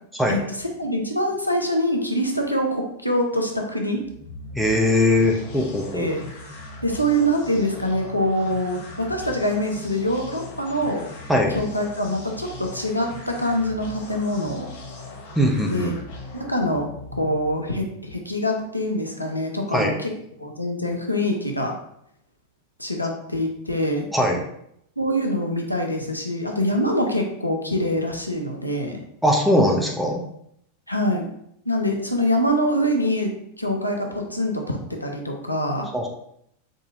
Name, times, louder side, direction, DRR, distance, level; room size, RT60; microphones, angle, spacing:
voice 1, 0.3-4.0 5.9-6.2 6.8-11.1 11.5-14.7 15.7-15.9 16.3-20.1 20.4-21.7 22.8-24.1 25.0-29.0 30.9-31.2 31.7-33.3 33.6-35.9, equal, 85° left, 1 dB, 0.5 m, -24 dB
sound 1, 3.9-17.7, left 2 dB, 55° left, 0.7 m, -39 dB
voice 2, 4.6-6.1 11.3-11.5 15.3-15.9 19.7-19.9 24.1-24.4 29.2-30.2 35.9-36.1, left 1 dB, 5° right, 0 dB, 0.7 m, -20 dB
4.8 x 2.7 x 2.6 m, 0.73 s
figure-of-eight pair, 90°, 0 cm